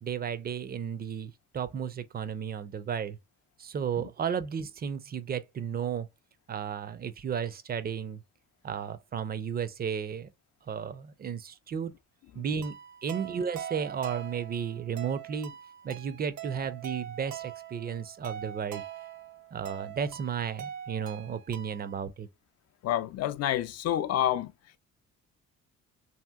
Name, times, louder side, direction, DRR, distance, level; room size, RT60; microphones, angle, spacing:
voice 1, 0.0-3.2 3.6-6.1 6.5-8.2 8.6-10.3 10.7-11.9 12.3-12.8 13.0-15.5 15.8-18.8 19.5-22.3, right 7 dB, 30° right, 0.4 m, -33 dB
sound 1, 12.6-22.0, right 10 dB, 65° right, 0.7 m, -43 dB
voice 2, 22.8-24.5, left 11 dB, 55° left, 0.4 m, -28 dB
2.8 x 2.8 x 2.2 m
cardioid pair, 90°, 30 cm